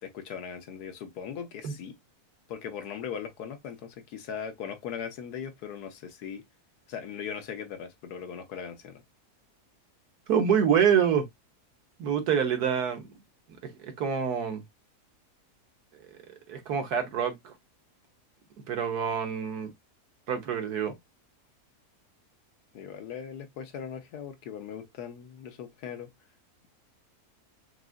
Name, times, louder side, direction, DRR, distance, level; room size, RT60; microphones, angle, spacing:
voice 1, 0.0-2.0 2.5-6.4 6.9-9.0 22.7-26.1, left 7 dB, 80° left, 1.4 m, -39 dB
voice 2, 10.3-11.3 12.0-13.0 13.8-14.6 16.5-17.5 18.7-19.7 20.3-20.9, right 7 dB, 75° right, 1.6 m, -26 dB
5.9 x 2.5 x 2.4 m
omnidirectional pair, 1.7 m